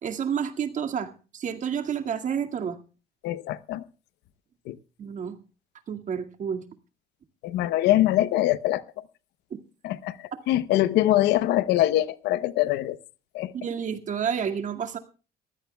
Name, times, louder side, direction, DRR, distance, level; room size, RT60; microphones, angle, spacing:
voice 1, 0.0-2.8 5.0-5.4 5.9-6.6 13.5-15.0, right 7 dB, 50° right, 5 dB, 2.1 m, -30 dB
voice 2, 3.2-3.8 4.7-4.8 7.4-8.8 9.8-13.0 13.3-13.5, left 14 dB, 85° left, 16 dB, 0.8 m, -23 dB
23.0 x 15.5 x 2.3 m, 0.35 s
cardioid pair, 110°, 17 cm